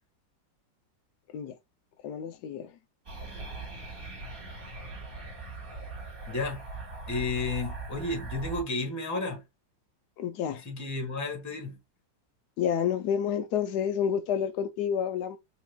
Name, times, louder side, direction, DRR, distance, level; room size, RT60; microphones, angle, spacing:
voice 1, 2.0-2.7 10.2-10.6 12.6-15.4, left 8 dB, 70° left, 1.1 m, -29 dB
sound 1, 3.1-8.6, right 3 dB, 45° right, 3.0 m, -40 dB
voice 2, 6.3-6.6 7.1-9.4 10.6-11.8, left 3 dB, 10° left, 1.1 m, -32 dB
5.5 x 3.0 x 2.3 m
omnidirectional pair, 2.1 m